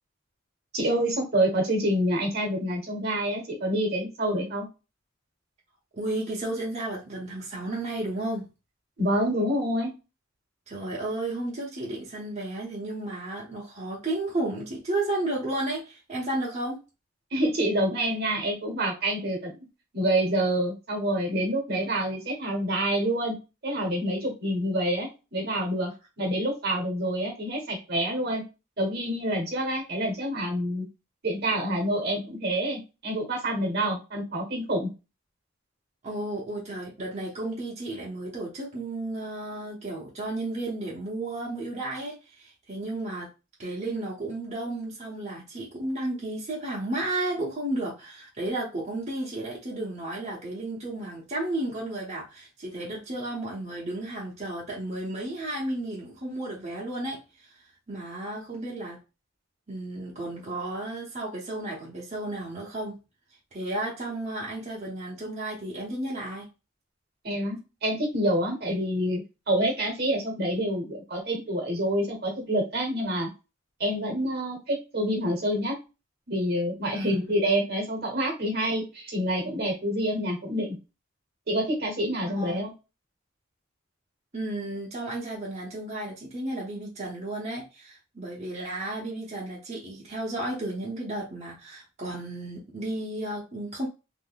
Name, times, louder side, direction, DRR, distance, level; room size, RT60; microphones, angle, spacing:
voice 1, 0.7-4.7 9.0-9.9 17.3-19.5 19.9-23.3 23.6-25.9 26.2-28.4 28.8-30.9 31.2-34.9 67.2-69.2 69.5-73.3 73.8-75.7 76.3-80.8 81.5-82.7, right 1 dB, 50° right, 1.2 m, -27 dB
voice 2, 5.9-8.5 10.7-16.8 36.0-43.3 43.6-57.5 57.9-59.0 59.7-63.0 63.5-66.5 76.9-77.1 82.4-82.7 84.3-93.9, right 2 dB, 35° right, 1.1 m, -33 dB
3.7 x 2.9 x 2.3 m
head